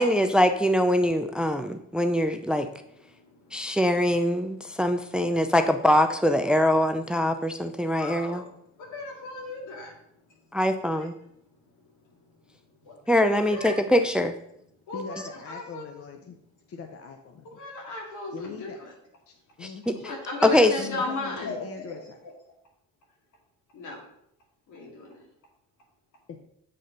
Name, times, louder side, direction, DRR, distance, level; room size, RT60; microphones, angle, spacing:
voice 1, 0.0-2.7 3.5-8.4 10.5-11.1 13.1-14.4 19.6-19.9 20.4-20.7, left 1 dB, 5° right, 7 dB, 0.5 m, -23 dB
voice 2, 3.1-3.8 8.0-8.5 8.7-9.9 12.8-13.0 13.3-13.8 14.9-15.8 17.5-18.9 19.6-22.3 23.7-24.0 24.7-25.2, left 2 dB, 80° left, 0 dB, 2.3 m, -36 dB
voice 3, 14.9-16.4 16.7-17.6 18.3-18.8 19.3-20.1 20.8-22.2 26.3-26.4, left 5 dB, 50° left, 4 dB, 0.7 m, -41 dB
7.7 x 3.8 x 5.2 m, 0.74 s
cardioid pair, 90°, 30 cm